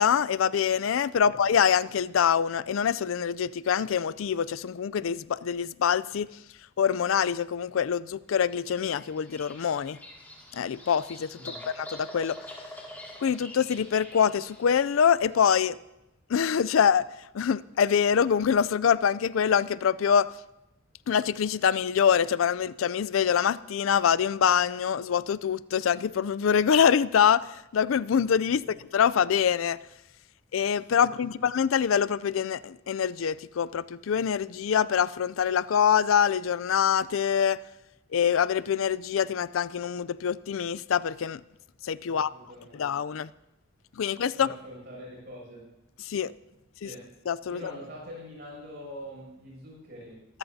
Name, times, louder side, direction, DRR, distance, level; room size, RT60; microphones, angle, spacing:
voice 1, 0.0-6.3 6.8-10.0 10.5-12.4 13.2-15.8 16.3-17.1 17.3-20.3 21.1-28.6 28.9-29.8 30.5-37.6 38.1-41.4 41.8-42.3 42.8-43.3 44.0-44.5 46.0-46.3 46.8-46.9 47.3-47.6, left 7 dB, 85° left, 0.4 m, -25 dB
Bird vocalization bird call bird song, 8.5-15.1, left 1 dB, 10° left, 2.2 m, -45 dB
voice 2, 11.4-11.7 28.5-28.7 31.0-31.4 42.1-42.8 44.3-45.7 46.8-47.1 47.5-50.4, equal, 55° right, 6.9 m, -44 dB
23.0 x 13.5 x 2.8 m
head